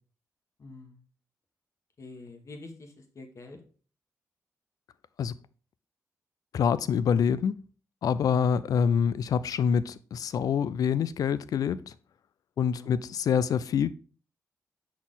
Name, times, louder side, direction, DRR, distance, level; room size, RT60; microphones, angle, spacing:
voice 1, 0.6-1.0 2.0-3.6 12.6-12.9, left 3 dB, 55° left, 1.4 m, -46 dB
voice 2, 6.5-7.6 8.0-11.9 12.6-13.9, left 7 dB, 75° left, 0.4 m, -26 dB
6.1 x 4.2 x 3.8 m
cardioid pair, 65°, 6 cm